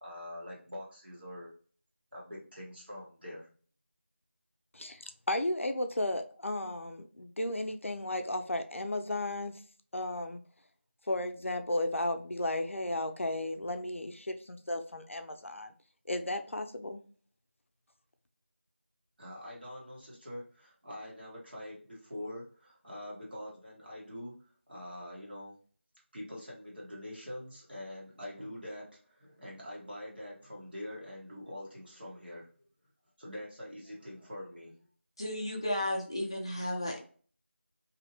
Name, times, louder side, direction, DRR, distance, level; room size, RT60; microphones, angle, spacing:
voice 1, 0.0-1.5 2.1-3.5 19.2-24.4 24.7-25.5 26.1-32.5 33.2-34.8, left 1 dB, 50° right, -5 dB, 1.0 m, -44 dB
voice 2, 4.7-9.5 9.9-10.4 11.1-15.7 16.1-17.0, left 1 dB, 85° left, 7 dB, 0.5 m, -34 dB
voice 3, 35.2-37.0, left 1 dB, 25° left, -1 dB, 0.5 m, -33 dB
2.7 x 2.1 x 2.6 m, 0.41 s
figure-of-eight pair, 175°, 7 cm